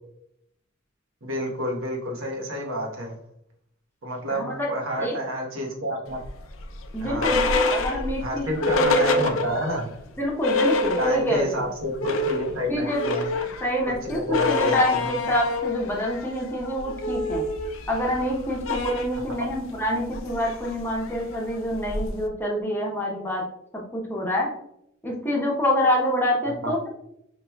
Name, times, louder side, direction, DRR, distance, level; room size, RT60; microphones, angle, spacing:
voice 1, 1.2-3.2 4.0-6.2 7.0-7.4 8.2-9.9 11.0-13.3 14.0-15.2 19.3-19.4 26.4-26.7, equal, 90° right, 1 dB, 1.0 m, -29 dB
voice 2, 4.3-4.7 5.0-5.1 6.9-8.5 8.7-9.2 10.2-11.5 12.7-13.0 13.6-17.4 17.9-23.4 23.7-24.5 25.0-26.9, equal, 10° left, -2 dB, 0.8 m, -26 dB
sound 1, 6.2-9.8 10.1-10.2 10.4-11.5 11.8-22.3, left 2 dB, 70° left, 0.5 m, -27 dB
5.8 x 3.0 x 2.2 m, 0.76 s
head